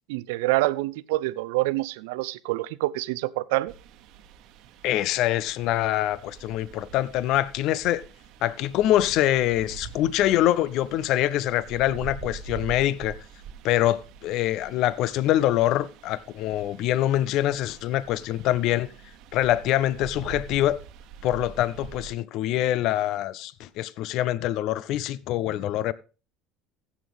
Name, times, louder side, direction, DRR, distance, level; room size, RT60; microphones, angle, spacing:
voice 1, 0.1-3.7, right 19 dB, 85° right, 0.5 m, -26 dB
sound 1, 3.7-22.2, right 7 dB, 65° right, 1.1 m, -45 dB
voice 2, 4.8-8.0 8.4-13.2 13.6-18.9 19.3-20.8 21.2-25.9, left 13 dB, 60° left, 0.5 m, -24 dB
15.0 x 7.2 x 3.5 m
supercardioid pair, 120°, 0 cm